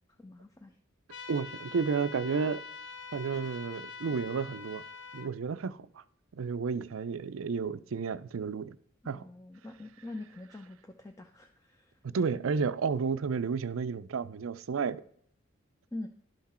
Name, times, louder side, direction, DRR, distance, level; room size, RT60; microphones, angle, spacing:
voice 1, 0.2-0.8 9.1-12.0 15.9-16.1, left 2 dB, 15° left, 0.6 m, -44 dB
sound 1, 1.1-5.3, left 5 dB, 60° left, 0.8 m, -45 dB
voice 2, 1.3-2.6 3.1-4.8 5.1-6.0 6.3-8.8 9.1-9.3 12.0-15.0, right 5 dB, 85° right, 0.5 m, -32 dB
12.0 x 5.9 x 4.3 m
head